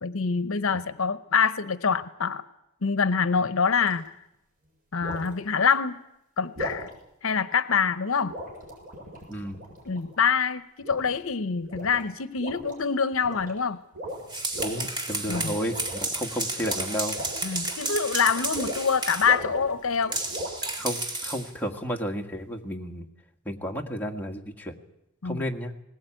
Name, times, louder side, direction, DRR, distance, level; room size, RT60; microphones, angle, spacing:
voice 1, 0.0-2.4 2.8-4.0 4.9-6.0 6.4-6.9 7.2-8.3 9.9-13.8 15.3-15.5 17.4-20.1 25.2-25.4, left 6 dB, 70° left, 14 dB, 0.8 m, -25 dB
sound 1, 3.8-4.1 5.0-5.3 6.6-6.9 8.3-10.2 10.8-11.3 11.6-12.0 12.4-12.8 13.1-13.6 13.9-14.8 15.2-16.1 16.5-18.9 19.2-20.7, equal, 40° right, 7.4 m, -37 dB
voice 2, 9.3-9.6 14.6-17.2 20.8-23.0 23.5-24.7 25.2-25.7, equal, 10° left, 1 dB, 1.8 m, -32 dB
sound 2, 14.1-19.4 20.1-21.5, right 2 dB, 20° right, 2.4 m, -32 dB
20.0 x 19.5 x 9.1 m, 0.87 s
head